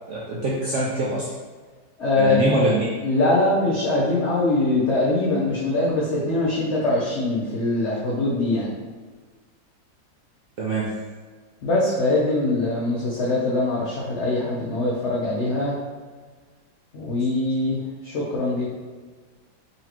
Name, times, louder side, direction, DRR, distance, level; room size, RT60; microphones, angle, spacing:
voice 1, 0.1-1.3 2.2-2.9 10.6-10.9, right 2 dB, 80° right, -5 dB, 0.6 m, -24 dB
voice 2, 2.0-2.6 3.0-8.7 11.6-15.7 16.9-17.8 18.0-18.6, left 2 dB, 60° left, -6 dB, 0.7 m, -22 dB
3.9 x 3.1 x 2.9 m, 1.5 s
omnidirectional pair, 1.9 m